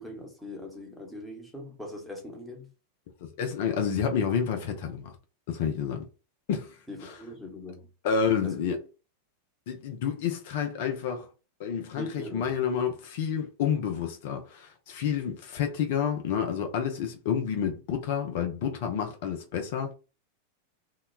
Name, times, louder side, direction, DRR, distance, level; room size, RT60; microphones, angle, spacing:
voice 1, 0.0-2.7 6.9-7.9 8.4-8.6 12.0-12.5, left 1 dB, 5° left, 0.8 m, -41 dB
voice 2, 3.4-5.2 5.5-6.0 6.5-7.1 8.0-8.8 9.7-11.3 11.6-19.9, left 7 dB, 50° left, 0.5 m, -29 dB
2.8 x 2.1 x 2.3 m
figure-of-eight pair, 90°, 0 cm